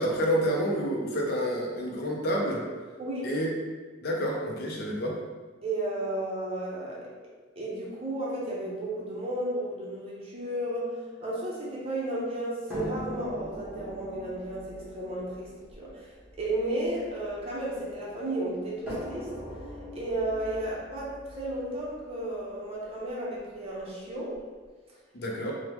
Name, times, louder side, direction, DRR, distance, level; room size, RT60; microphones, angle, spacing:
voice 1, 0.0-2.6 3.2-3.5 4.0-5.2 25.1-25.5, equal, 55° left, -1 dB, 0.5 m, -28 dB
voice 2, 5.6-7.1 7.6-10.9 11.2-15.5 15.8-16.1 16.4-19.3 19.9-24.4, right 1 dB, 30° right, -5 dB, 0.6 m, -33 dB
sound 1, 12.7-17.9 18.9-22.8 23.8-23.9 24.3-24.4, equal, 5° right, 0.9 m, -41 dB
3.3 x 2.1 x 2.9 m, 1.4 s
head